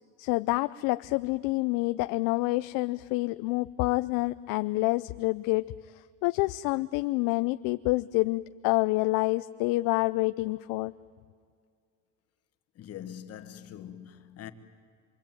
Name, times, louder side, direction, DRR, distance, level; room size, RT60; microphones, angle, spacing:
voice 1, 0.2-5.7 6.2-10.9, left 22 dB, 75° left, 0.6 m, -27 dB
voice 2, 12.8-14.5, left 10 dB, 45° left, 1.6 m, -43 dB
26.0 x 24.0 x 9.1 m
cardioid pair, 145°, 34 cm